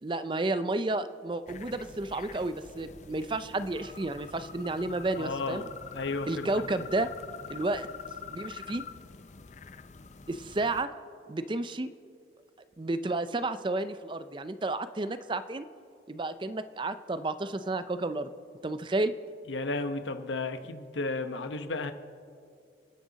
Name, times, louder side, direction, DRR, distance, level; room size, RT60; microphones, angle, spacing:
voice 1, 0.0-5.6 6.3-7.1 7.5-7.9 8.3-8.8 10.3-10.9 11.3-11.9 12.8-15.6 16.1-18.3 18.6-19.1, right 2 dB, 25° right, 0.5 m, -31 dB
sound 1, 1.5-10.8, left 6 dB, 40° left, 0.5 m, -45 dB
voice 2, 5.2-6.5 6.8-6.9 19.5-21.9, left 3 dB, 80° left, 0.9 m, -33 dB
29.5 x 10.0 x 4.0 m
head